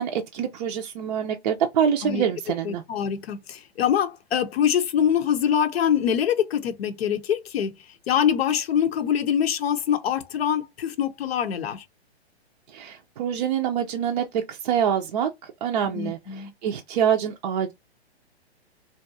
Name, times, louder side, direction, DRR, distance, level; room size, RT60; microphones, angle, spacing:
voice 1, 0.0-2.8 12.7-17.7, right 8 dB, 40° right, 0.4 m, -26 dB
voice 2, 2.6-7.7 8.1-11.8 15.9-16.5, left 9 dB, 65° left, 0.7 m, -24 dB
2.6 x 2.3 x 2.6 m
hypercardioid pair, 125°, 33 cm